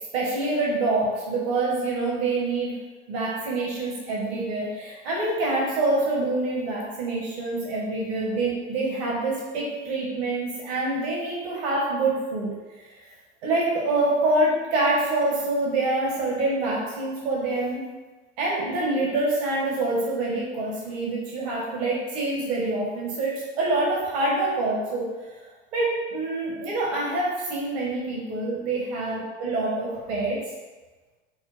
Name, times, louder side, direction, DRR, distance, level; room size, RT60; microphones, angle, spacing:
voice 1, 0.1-2.7 3.1-13.1 13.4-17.8 18.4-25.4 25.7-30.4, right 2 dB, 60° right, -4 dB, 1.0 m, -26 dB
3.7 x 2.2 x 3.6 m, 1.3 s
figure-of-eight pair, 70°, 35 cm